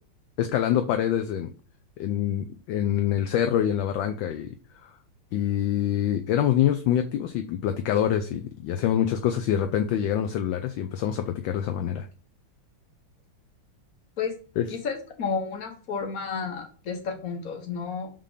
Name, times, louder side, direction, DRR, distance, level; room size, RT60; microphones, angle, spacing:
voice 1, 0.4-1.5 2.0-4.5 4.8-4.9 5.3-12.1 14.6-14.7, left 10 dB, 75° left, 1.2 m, -25 dB
voice 2, 14.7-18.1, left 5 dB, 45° left, 1.5 m, -31 dB
5.7 x 3.6 x 5.0 m
omnidirectional pair, 2.3 m